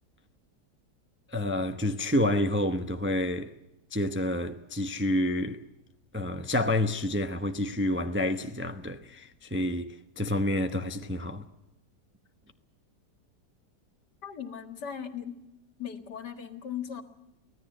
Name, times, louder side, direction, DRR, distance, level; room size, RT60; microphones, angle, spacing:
voice 1, 1.3-3.6 3.9-5.6 6.1-11.5, left 1 dB, 10° right, 0.6 m, -29 dB
voice 2, 14.2-15.4 15.8-17.0, left 8 dB, 70° left, 2.3 m, -38 dB
24.5 x 17.0 x 7.8 m
omnidirectional pair, 1.9 m